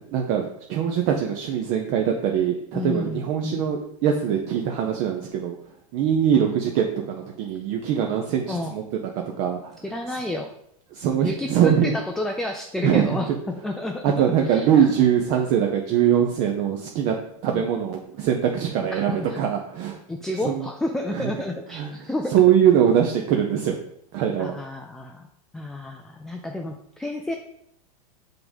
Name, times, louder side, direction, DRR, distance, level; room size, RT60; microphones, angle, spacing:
voice 1, 0.1-5.6 5.9-8.8 9.4-9.8 10.9-11.9 12.8-13.4 14.0-17.2 17.4-20.0 20.4-20.7 21.1-21.3 21.7-23.8 24.1-24.6, right 9 dB, 40° right, 2 dB, 0.7 m, -22 dB
voice 2, 2.7-3.8 6.4-6.5 8.5-8.8 9.8-10.5 11.2-14.9 17.5-17.6 18.9-19.4 20.1-22.3 24.4-25.3 25.5-27.3, left 1 dB, ahead, 3 dB, 0.3 m, -30 dB
5.8 x 3.6 x 5.3 m, 0.73 s
supercardioid pair, 145°, 19 cm